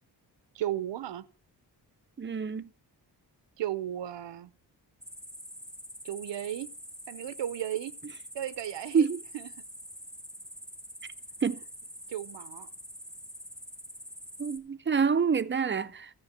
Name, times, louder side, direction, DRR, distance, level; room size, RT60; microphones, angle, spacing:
voice 1, 0.5-1.3 3.6-4.5 6.0-6.7 7.1-7.9 8.3-9.1 9.3-9.5 12.1-12.7, right 12 dB, 90° right, 0.7 m, -34 dB
voice 2, 2.2-2.7 8.9-9.2 11.4-11.6 14.4-16.1, right 6 dB, 30° right, 0.4 m, -27 dB
sound 1, 5.0-14.6, equal, ahead, 0.9 m, -46 dB
13.0 x 5.1 x 7.2 m
wide cardioid pair, 105°, 41 cm